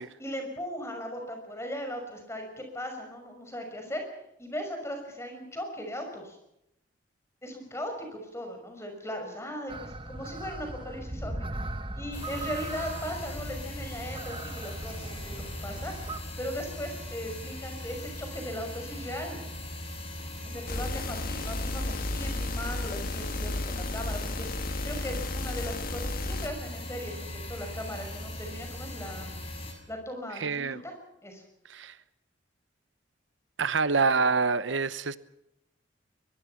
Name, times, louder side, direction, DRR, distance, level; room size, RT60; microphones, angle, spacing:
voice 1, 0.2-4.0 4.4-6.4 7.4-11.7 12.0-15.9 16.4-19.4 20.4-29.4 29.9-31.0 31.2-31.4, equal, 15° left, 5 dB, 6.0 m, -38 dB
sound 1, 9.7-16.2, right 2 dB, 25° right, 1.2 m, -39 dB
sound 2, 12.1-29.7, left 1 dB, 30° left, 6.4 m, -39 dB
sound 3, 20.7-26.5, left 2 dB, 50° left, 1.6 m, -33 dB
voice 2, 30.4-30.8 31.7-31.9 33.6-35.2, right 4 dB, 70° right, 15 dB, 0.8 m, -26 dB
22.5 x 22.5 x 5.8 m, 0.82 s
head